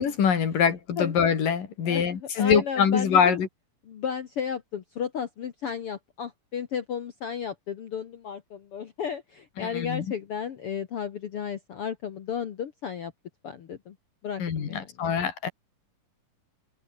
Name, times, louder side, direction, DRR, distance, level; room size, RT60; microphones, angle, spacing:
voice 1, 0.0-3.5 9.7-10.1 14.4-15.5, left 7 dB, 70° left, 4.7 m, -24 dB
voice 2, 1.8-3.4 3.8-13.1 13.4-13.9 14.2-15.1, left 7 dB, 55° left, 1.7 m, -34 dB
omnidirectional pair, 4.0 m